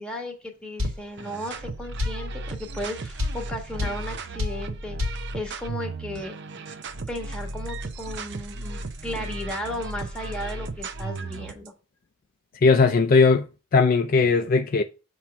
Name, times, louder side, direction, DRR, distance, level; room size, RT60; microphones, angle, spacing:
voice 1, 0.0-6.4 7.1-11.7, left 1 dB, 5° left, 1.3 m, -35 dB
sound 1, 0.8-11.7, right 2 dB, 55° right, 0.6 m, -35 dB
sound 2, 0.8-1.0 2.0-2.2 3.2-3.4 3.8-4.0 4.4-4.6 5.0-5.2, left 2 dB, 90° right, 1.6 m, -26 dB
voice 2, 12.6-13.5 13.7-14.8, left 4 dB, 45° left, 0.4 m, -18 dB
7.2 x 3.1 x 5.8 m
head